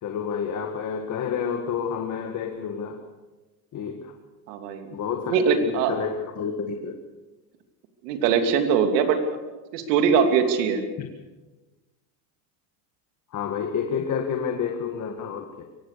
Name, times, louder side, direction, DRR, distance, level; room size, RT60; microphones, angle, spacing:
voice 1, 0.0-3.0 3.7-4.1 4.9-6.9 11.0-11.1 13.3-15.6, left 7 dB, 40° left, 4 dB, 1.9 m, -29 dB
voice 2, 4.5-5.0 5.3-5.9 8.0-9.2 9.7-10.8, right 6 dB, 85° right, 6 dB, 3.1 m, -22 dB
24.0 x 18.5 x 6.9 m, 1.2 s
cardioid pair, 140°, 47 cm